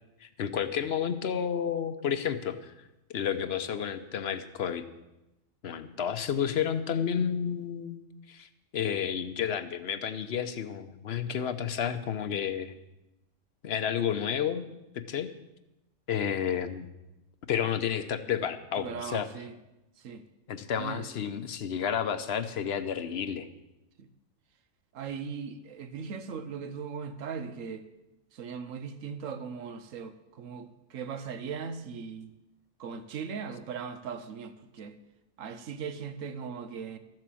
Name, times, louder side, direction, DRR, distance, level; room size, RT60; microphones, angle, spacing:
voice 1, 0.2-2.7 3.1-4.8 5.6-8.0 8.3-8.5 8.7-12.8 13.6-14.6 14.9-15.3 16.1-16.9 17.5-19.3 20.5-23.5, left 8 dB, 60° left, 11 dB, 1.0 m, -31 dB
voice 2, 18.8-19.5 20.0-20.2 20.8-21.1 24.0-24.1 24.9-27.8 28.3-32.3 32.8-34.9 35.4-37.0, right 6 dB, 85° right, 11 dB, 1.2 m, -39 dB
13.5 x 7.6 x 7.6 m, 0.96 s
omnidirectional pair, 1.3 m